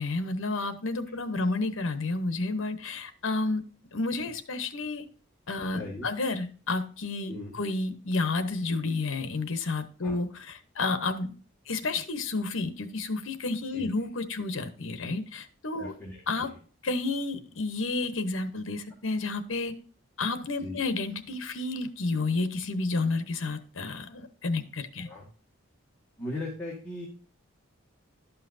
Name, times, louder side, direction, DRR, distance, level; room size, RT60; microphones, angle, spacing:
voice 1, 0.0-3.6 3.9-5.1 5.5-11.3 11.7-15.9 16.3-16.5 16.8-19.8 20.2-25.1, left 3 dB, 65° left, 10 dB, 0.9 m, -31 dB
voice 2, 5.7-6.1 7.3-7.5 10.0-10.2 13.8-13.9 15.8-16.5 20.6-20.8 25.0-25.3 26.2-27.1, left 2 dB, 10° left, -6 dB, 1.8 m, -38 dB
12.0 x 5.7 x 2.6 m, 0.41 s
head